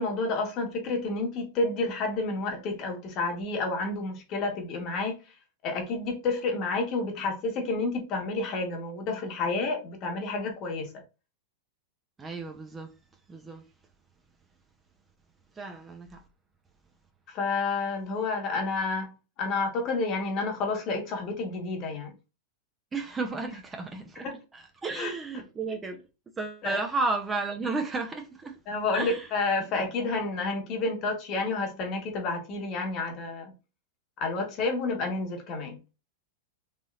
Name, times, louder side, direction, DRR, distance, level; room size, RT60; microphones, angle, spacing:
voice 1, 0.0-5.2 5.6-10.9 17.3-22.1 24.2-24.4 25.0-25.1 26.6-26.8 28.7-33.5 34.2-35.8, left 3 dB, 35° left, 1.0 m, -30 dB
voice 2, 12.2-12.9 13.3-13.7 15.5-16.2 22.9-24.3 24.5-26.0 26.4-28.6 28.9-29.3, right 3 dB, 15° right, 0.5 m, -33 dB
3.2 x 2.7 x 2.3 m
supercardioid pair, 140°, 0 cm